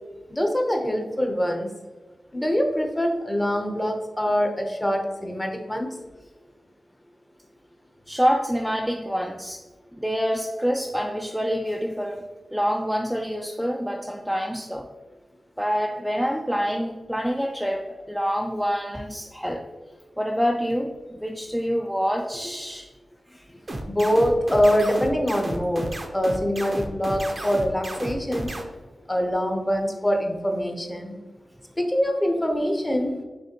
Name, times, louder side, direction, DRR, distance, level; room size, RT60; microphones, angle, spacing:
voice 1, 0.3-1.7 2.3-6.0 23.9-28.5 29.1-31.2 31.8-33.2, equal, 20° left, 3 dB, 0.8 m, -24 dB
voice 2, 8.1-9.6 9.9-14.9 15.6-19.6 20.2-22.9 23.3-23.4, equal, ahead, 2 dB, 0.4 m, -26 dB
sound 1, 23.7-28.6, right 1 dB, 45° right, 0.6 m, -32 dB
5.5 x 3.2 x 2.9 m, 1.3 s
cardioid pair, 45°, 0 cm